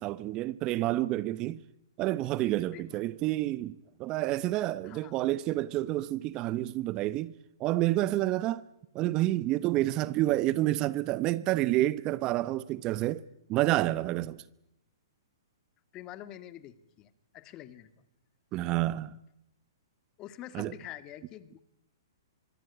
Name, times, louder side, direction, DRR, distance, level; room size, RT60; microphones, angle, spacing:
voice 1, 0.0-1.6 2.0-7.3 7.6-8.6 8.9-13.2 13.5-14.4 18.5-19.2 20.5-20.7, right 16 dB, 30° right, 0.9 m, -29 dB
voice 2, 2.7-3.1 4.8-5.1 15.9-17.9 20.2-21.6, left 13 dB, 30° left, 2.1 m, -46 dB
24.5 x 20.5 x 9.9 m
hypercardioid pair, 130°, 2 cm